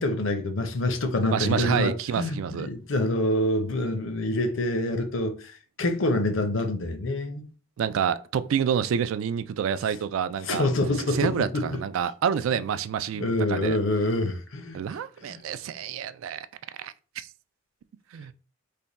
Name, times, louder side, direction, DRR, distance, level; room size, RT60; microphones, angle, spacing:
voice 1, 0.0-7.4 10.5-11.6 13.1-14.8 15.3-15.4, left 1 dB, 70° left, 0.7 m, -26 dB
voice 2, 1.3-2.7 7.8-10.7 11.1-13.8 14.7-16.5 16.8-17.3 18.1-18.3, right 7 dB, 80° right, 0.3 m, -28 dB
3.4 x 2.2 x 4.0 m
head